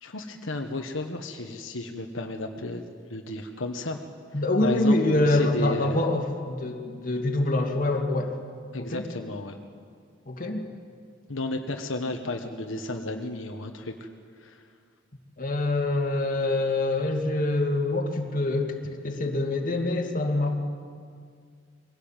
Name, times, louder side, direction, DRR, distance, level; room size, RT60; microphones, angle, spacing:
voice 1, 0.0-2.8 3.1-4.0 4.6-6.0 8.7-9.6 11.3-14.1 14.4-14.6, left 2 dB, 85° left, 4 dB, 1.3 m, -33 dB
voice 2, 4.3-8.4 8.8-9.0 10.3-10.7 15.4-20.6, left 2 dB, 45° left, 2 dB, 2.2 m, -25 dB
22.5 x 17.0 x 9.0 m, 2.1 s
head